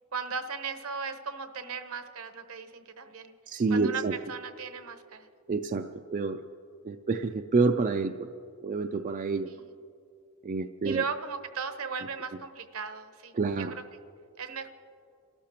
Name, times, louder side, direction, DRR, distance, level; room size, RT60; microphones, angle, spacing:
voice 1, 0.1-3.3 3.7-4.0 4.3-5.3 10.8-13.7 14.4-14.7, right 5 dB, 70° right, 8 dB, 0.9 m, -37 dB
voice 2, 3.5-4.2 5.5-6.4 6.8-8.3 8.6-9.5 10.4-11.0 13.3-13.7, right 4 dB, 35° right, 7 dB, 0.4 m, -28 dB
30.0 x 13.5 x 3.0 m, 2.4 s
head